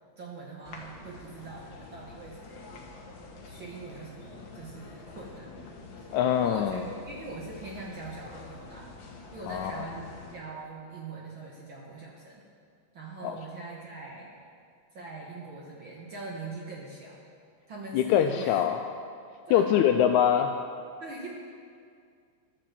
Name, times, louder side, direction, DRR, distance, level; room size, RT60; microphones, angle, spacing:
voice 1, 0.2-2.7 3.5-5.5 6.0-8.9 9.3-12.4 12.9-14.3 14.9-17.2 17.7-18.6 19.5-19.6 21.0-21.3, right 3 dB, 55° right, -3 dB, 1.5 m, -42 dB
sound 1, 0.6-10.4, left 3 dB, 60° left, 1.2 m, -47 dB
voice 2, 6.1-6.8 9.5-9.9 13.2-13.4 17.9-18.8 19.5-20.5, left 9 dB, 80° left, 6 dB, 1.7 m, -23 dB
11.5 x 7.5 x 7.3 m, 2.2 s
omnidirectional pair, 3.7 m